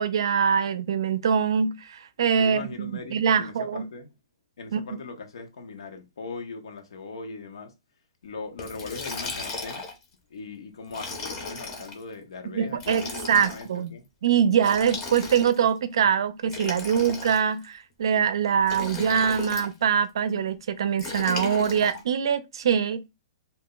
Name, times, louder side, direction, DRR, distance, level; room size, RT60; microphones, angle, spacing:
voice 1, 0.0-3.9 4.7-4.8 12.5-13.9 14.2-23.1, right 7 dB, 60° right, 0.4 m, -24 dB
voice 2, 2.3-4.1 4.6-7.7 8.2-9.9 10.3-14.0, left 4 dB, 80° left, 0.9 m, -40 dB
Liquid, 8.6-10.0 10.9-11.9 12.7-13.7 14.6-15.7 16.4-17.6 18.6-19.7 21.0-22.0, left 3 dB, 20° left, 0.7 m, -35 dB
2.6 x 2.1 x 3.7 m
hypercardioid pair, 170°, 3 cm